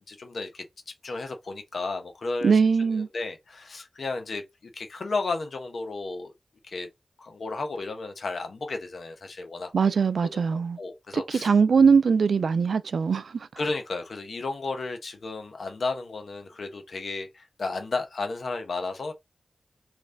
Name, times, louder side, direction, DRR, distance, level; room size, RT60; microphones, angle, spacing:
voice 1, 0.0-2.6 2.9-4.4 4.7-6.3 6.6-6.9 7.2-9.7 10.5-11.5 13.6-19.1, left 3 dB, 75° left, 1.1 m, -33 dB
voice 2, 2.4-3.1 9.7-10.8 11.1-13.3, right 5 dB, 80° right, 0.3 m, -21 dB
3.3 x 3.2 x 3.8 m
cardioid pair, 45°, 0 cm